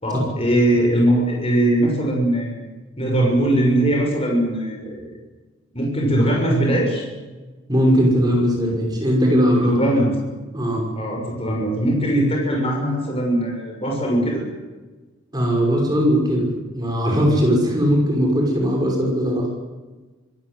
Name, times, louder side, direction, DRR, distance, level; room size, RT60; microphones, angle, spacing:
voice 1, 0.0-2.7 3.0-5.1 5.7-7.0 9.6-10.2 11.0-14.5, right 1 dB, 30° left, 0 dB, 6.5 m, -20 dB
voice 2, 7.7-10.0 10.5-10.8 15.3-16.5 16.7-19.5, equal, 20° right, -1 dB, 5.9 m, -19 dB
26.0 x 15.0 x 9.3 m, 1.2 s
head